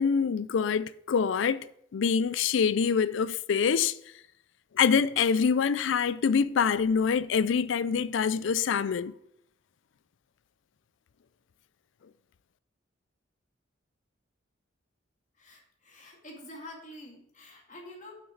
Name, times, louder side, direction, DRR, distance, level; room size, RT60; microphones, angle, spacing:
voice 1, 0.0-1.7 1.9-4.0 4.7-9.1, left 6 dB, 70° left, 0.4 m, -25 dB
voice 2, 15.4-18.1, left 1 dB, 40° left, 2.2 m, -47 dB
6.3 x 6.1 x 7.3 m
head